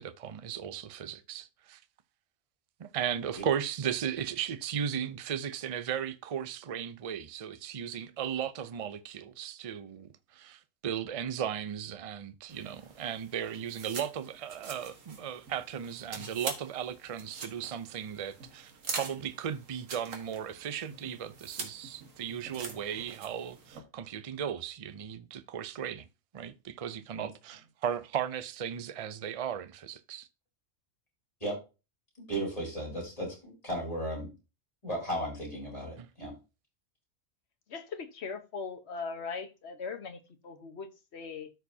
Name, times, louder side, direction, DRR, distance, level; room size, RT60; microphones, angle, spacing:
voice 1, 0.0-1.8 2.8-26.1 26.3-30.3 36.0-36.1, right 8 dB, 40° right, 0.5 m, -36 dB
sound 1, 12.5-23.8, right 4 dB, 85° right, 1.8 m, -44 dB
voice 2, 32.2-34.3 34.8-36.3, right 1 dB, 30° left, 4.4 m, -35 dB
voice 3, 37.7-41.5, left 5 dB, 55° left, 1.4 m, -40 dB
13.0 x 4.6 x 2.8 m
omnidirectional pair, 1.3 m